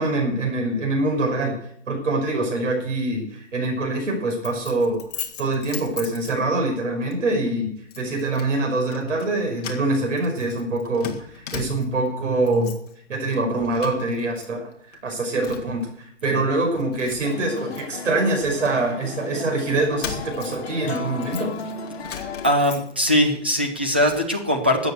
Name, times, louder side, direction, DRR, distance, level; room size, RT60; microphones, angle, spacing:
voice 1, 0.0-1.6 1.9-5.0 5.4-12.8 13.1-14.7 15.0-21.5, right 2 dB, 85° right, 0 dB, 5.9 m, -24 dB
Keys jangling, 4.4-6.7 7.1-7.3 7.9-8.5 8.8-9.3 9.6-12.1 12.4-12.9 13.3-14.5 14.7-15.8 16.3-16.4 16.8-19.1 19.7-23.2 23.6-24.3, left 7 dB, 35° left, 1.9 m, -38 dB
sound 1, 17.2-22.5, left 5 dB, 55° left, 2.0 m, -35 dB
voice 2, 22.2-24.9, left 1 dB, 10° right, 3 dB, 0.4 m, -21 dB
13.5 x 8.1 x 8.1 m, 0.67 s
hypercardioid pair, 170°, 36 cm